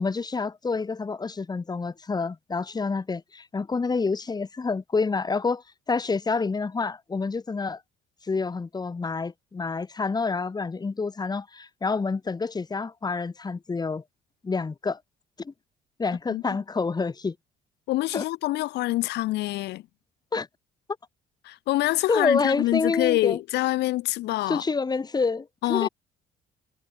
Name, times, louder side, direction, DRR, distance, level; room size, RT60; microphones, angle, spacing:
voice 1, 0.0-7.8 8.3-14.0 14.4-15.0 15.4-15.5 16.0-17.3 18.1-18.2 20.3-20.5 22.1-23.4 24.5-25.9, left 4 dB, 25° left, 4.7 m, -28 dB
voice 2, 17.9-19.8 21.4-24.6 25.6-25.9, left 17 dB, 80° left, 3.2 m, -26 dB
cardioid pair, 110°, 17 cm